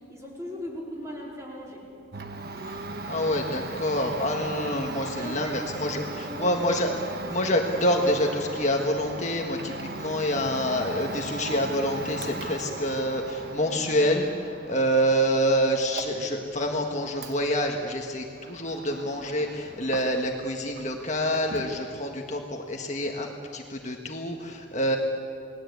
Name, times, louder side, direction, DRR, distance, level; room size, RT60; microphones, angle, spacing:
voice 1, 0.1-1.9 5.1-6.6 7.1-7.3, equal, 15° right, -3 dB, 4.7 m, -38 dB
Domestic sounds home sounds, 2.1-20.5 20.7-21.8, right 2 dB, 50° right, 1.4 m, -38 dB
voice 2, 3.1-6.9 7.3-25.0, equal, 35° left, 1 dB, 1.6 m, -27 dB
29.0 x 19.5 x 8.4 m, 2.4 s
head